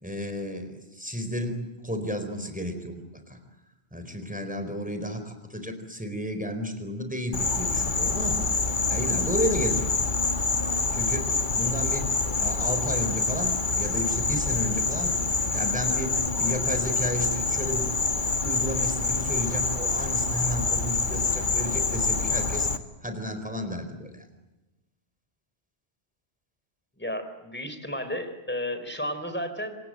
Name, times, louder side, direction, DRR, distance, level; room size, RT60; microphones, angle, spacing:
voice 1, 0.0-3.0 3.3-3.4 3.9-8.4 8.9-9.9 10.9-12.1 12.4-15.1 15.5-22.7 23.0-24.2, equal, 5° right, 7 dB, 4.5 m, -32 dB
Insect, 7.3-22.8, left 3 dB, 50° left, 1.7 m, -26 dB
voice 2, 27.0-29.8, left 1 dB, 10° left, 9 dB, 4.1 m, -33 dB
28.5 x 25.5 x 7.7 m, 1.1 s
omnidirectional pair, 1.1 m